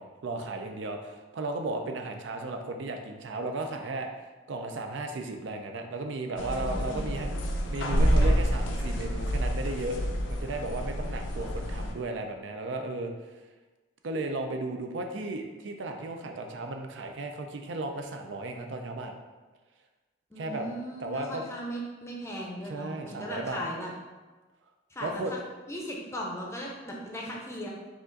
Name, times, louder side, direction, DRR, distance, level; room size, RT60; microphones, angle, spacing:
voice 1, 0.0-10.0 10.3-13.4 14.0-19.1 20.4-20.7 21.0-21.5 22.6-23.7 25.0-25.3, right 2 dB, 70° right, 4 dB, 0.4 m, -35 dB
sound 1, 6.4-11.9, equal, 75° left, 0.6 m, -28 dB
voice 2, 6.4-7.1 20.3-23.9 24.9-25.2 25.7-27.7, equal, 15° left, -2 dB, 0.6 m, -38 dB
4.9 x 2.4 x 3.8 m, 1.2 s
head